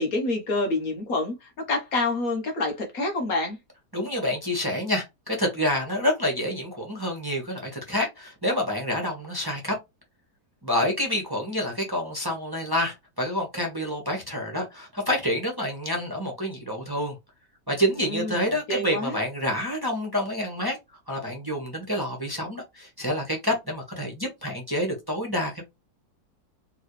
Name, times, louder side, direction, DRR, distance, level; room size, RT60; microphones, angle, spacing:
voice 1, 0.0-3.6 18.0-19.2, left 2 dB, 60° left, 1.5 m, -27 dB
voice 2, 3.9-9.7 10.6-17.1 17.7-20.8 21.1-25.6, equal, 15° right, 1.2 m, -28 dB
4.6 x 3.1 x 3.2 m
omnidirectional pair, 1.8 m